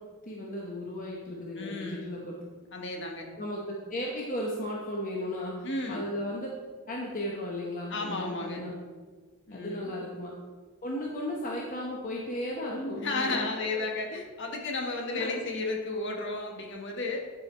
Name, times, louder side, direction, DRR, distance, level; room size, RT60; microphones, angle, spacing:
voice 1, 0.3-2.4 3.4-6.5 6.9-8.7 9.5-10.3 10.8-13.6 15.1-15.3, left 1 dB, 35° left, -2 dB, 0.9 m, -35 dB
voice 2, 1.6-2.1 2.7-3.3 5.6-6.0 7.9-8.6 9.5-9.8 12.7-17.2, left 3 dB, 55° left, 1 dB, 1.3 m, -33 dB
10.0 x 5.1 x 4.4 m, 1.4 s
head